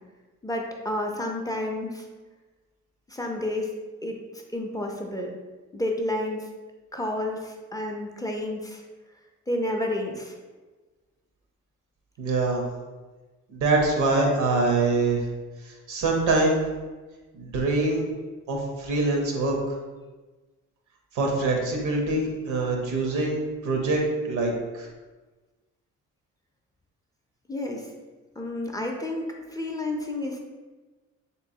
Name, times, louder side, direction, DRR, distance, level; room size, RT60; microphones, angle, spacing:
voice 1, 0.4-2.0 3.1-3.7 4.0-4.2 4.5-5.3 5.7-6.5 6.9-8.8 9.5-10.3 27.5-27.9 28.4-30.4, left 1 dB, 10° left, 0 dB, 0.4 m, -30 dB
voice 2, 12.2-12.7 13.5-15.2 15.6-16.6 17.3-18.0 18.5-19.6 21.1-24.9, right 2 dB, 80° right, 0 dB, 0.8 m, -24 dB
3.4 x 3.0 x 2.7 m, 1.3 s
cardioid pair, 90°, 30 cm